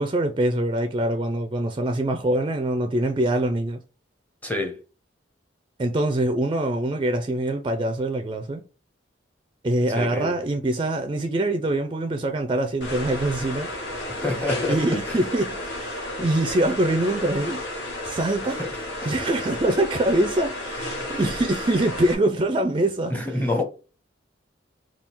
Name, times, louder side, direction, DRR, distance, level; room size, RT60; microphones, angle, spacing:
voice 1, 0.0-3.8 5.8-8.6 9.6-13.7 14.7-17.6 18.0-18.6 19.0-23.1 23.4-23.5, right 1 dB, 25° right, 0.4 m, -24 dB
voice 2, 4.4-4.8 10.0-10.4 14.1-14.8 15.1-15.2 16.2-16.3 18.6-18.7 19.0-19.3 21.0-21.2 23.1-23.6, left 2 dB, 10° left, 0.7 m, -28 dB
sound 1, 12.8-22.1, left 1 dB, 65° left, 1.3 m, -32 dB
3.6 x 2.3 x 4.4 m
head